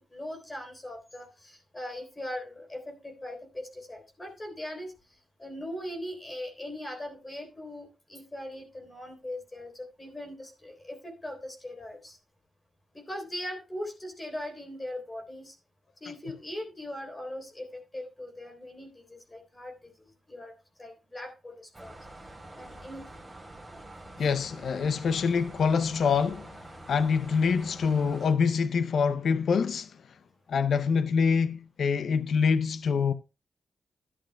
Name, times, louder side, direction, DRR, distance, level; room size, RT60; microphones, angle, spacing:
voice 1, 0.0-4.9 5.4-12.2 12.9-15.5 16.0-19.7 20.0-20.5 20.8-22.0 22.5-23.0 23.7-23.8, left 1 dB, 25° left, 3.6 m, -40 dB
sound 1, 21.7-28.3, right 1 dB, 15° right, 3.7 m, -47 dB
voice 2, 24.2-26.6 26.9-30.0 30.5-33.1, left 5 dB, 75° left, 0.5 m, -25 dB
12.5 x 11.0 x 2.2 m
cardioid pair, 75°, 0 cm